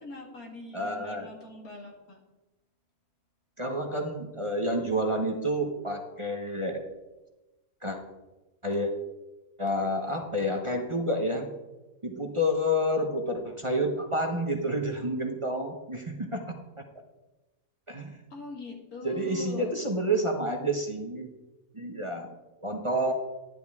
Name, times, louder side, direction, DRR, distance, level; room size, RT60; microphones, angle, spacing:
voice 1, 0.0-2.2 18.3-19.7, left 3 dB, 90° left, -1 dB, 2.7 m, -42 dB
voice 2, 0.7-1.3 3.6-6.8 7.8-8.0 8.6-8.9 9.6-11.5 12.0-16.6 17.9-18.2 19.0-21.3 21.7-22.3 22.6-23.1, equal, 25° right, 2 dB, 0.9 m, -29 dB
12.0 x 11.0 x 3.6 m, 1.1 s
omnidirectional pair, 1.5 m